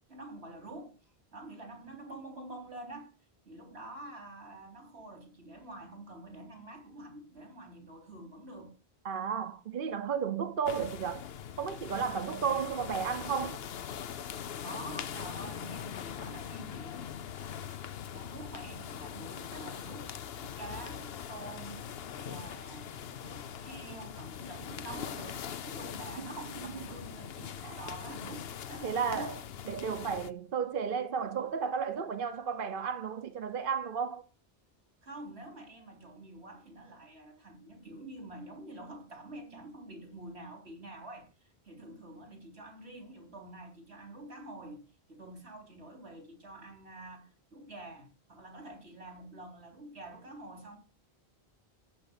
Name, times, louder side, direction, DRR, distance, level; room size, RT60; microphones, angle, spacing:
voice 1, 0.0-3.1 3.5-8.7 14.6-17.1 18.1-22.9 23.2-29.4 35.0-50.8, right 2 dB, 90° right, 3.8 m, -47 dB
voice 2, 9.0-11.2 11.6-13.6 26.2-26.3 27.6-27.8 28.8-29.3 29.7-34.2, right 6 dB, 55° right, 1.0 m, -33 dB
sound 1, 10.7-30.3, left 8 dB, 70° left, 1.0 m, -42 dB
13.5 x 5.3 x 8.0 m
omnidirectional pair, 1.1 m